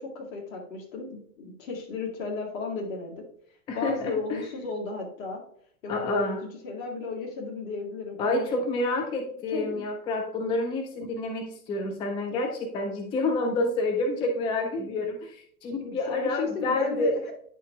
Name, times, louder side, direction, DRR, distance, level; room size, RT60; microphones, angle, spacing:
voice 1, 0.0-3.1 3.7-5.4 5.8-8.5 9.5-9.8 14.7-15.0 15.9-17.2, left 4 dB, 60° left, 0 dB, 2.2 m, -34 dB
voice 2, 3.7-4.4 5.9-6.4 8.2-17.3, left 2 dB, 10° left, 4 dB, 0.4 m, -28 dB
9.7 x 6.4 x 2.3 m, 0.64 s
figure-of-eight pair, 95°, 45 cm